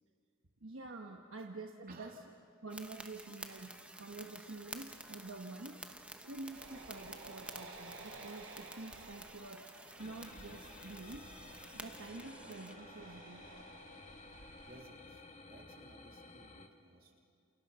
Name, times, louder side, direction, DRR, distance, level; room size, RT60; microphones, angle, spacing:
voice 1, 0.6-2.1 2.6-3.7 4.0-5.8 6.2-9.6 10.0-11.2 11.7-13.4, right 2 dB, 70° right, 2 dB, 1.3 m, -48 dB
voice 2, 1.9-2.2 14.7-17.2, right 2 dB, 45° right, 1 dB, 3.3 m, -58 dB
sound 1, 2.7-12.8, right 2 dB, 5° right, 1.1 m, -51 dB
sound 2, 6.5-14.8, right 2 dB, 90° right, 4.2 m, -54 dB
sound 3, 10.0-16.7, left 2 dB, 35° left, 1.6 m, -54 dB
29.0 x 28.5 x 5.7 m, 2.3 s
head